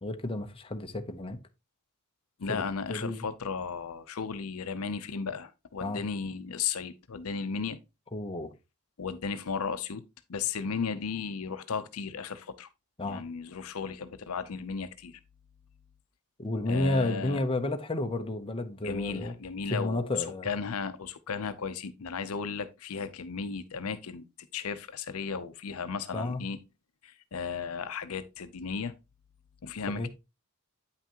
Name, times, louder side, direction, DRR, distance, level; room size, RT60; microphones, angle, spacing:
voice 1, 0.0-1.4 2.5-2.6 2.9-3.3 5.8-6.0 8.1-8.5 13.0-13.2 16.4-19.3 19.7-20.5 26.1-26.4 29.9-30.1, left 2 dB, 25° left, 0.8 m, -31 dB
voice 2, 2.4-7.8 9.0-10.0 10.3-12.7 13.0-15.2 16.7-17.4 18.8-20.1 20.4-24.2 24.5-26.6 27.0-28.9 29.6-30.1, left 5 dB, 70° left, 0.6 m, -35 dB
8.8 x 5.8 x 2.9 m
head